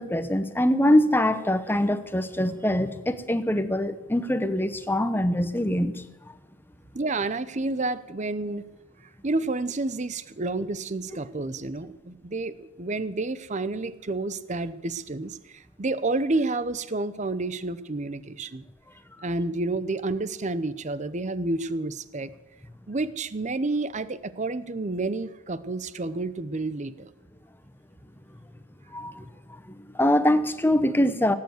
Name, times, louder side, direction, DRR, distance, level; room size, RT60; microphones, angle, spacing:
voice 1, 0.0-6.3 28.9-31.3, left 1 dB, 10° left, 11 dB, 0.9 m, -24 dB
voice 2, 6.9-8.6 9.2-18.6 19.2-22.3 22.9-27.1, right 2 dB, 40° right, 15 dB, 0.7 m, -30 dB
18.0 x 9.5 x 7.9 m, 1.0 s
head